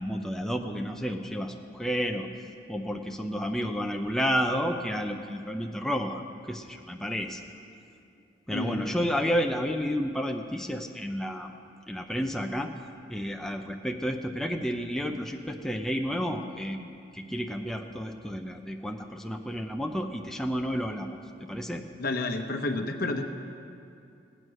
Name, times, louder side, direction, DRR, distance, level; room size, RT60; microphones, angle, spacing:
voice 1, 0.0-2.3 2.7-6.2 6.5-7.4 8.5-11.5 11.9-12.7 13.1-21.1 21.5-21.8, equal, ahead, 3 dB, 0.6 m, -31 dB
voice 2, 8.5-9.0 9.2-9.4 22.0-23.3, left 2 dB, 50° left, 5 dB, 0.9 m, -30 dB
16.5 x 9.1 x 6.3 m, 2.6 s
head